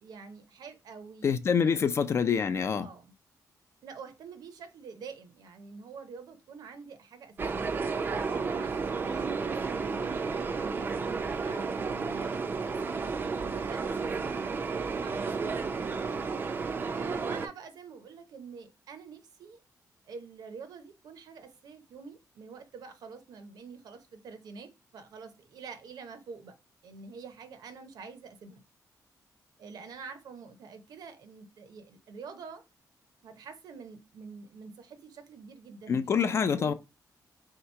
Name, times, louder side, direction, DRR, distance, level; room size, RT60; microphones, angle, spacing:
voice 1, 0.0-1.8 2.8-3.1 3.8-7.7 8.2-13.2 13.5-14.3 14.6-16.2 16.9-19.6 20.1-26.5 26.8-28.6 29.6-32.6 33.2-36.0 36.3-36.7, right 5 dB, 70° right, 0.7 m, -47 dB
voice 2, 1.2-2.9 35.9-36.7, left 6 dB, 40° left, 0.3 m, -26 dB
sound 1, 7.4-17.5, right 4 dB, 30° right, 0.4 m, -32 dB
3.2 x 2.9 x 4.4 m
wide cardioid pair, 175°, 7 cm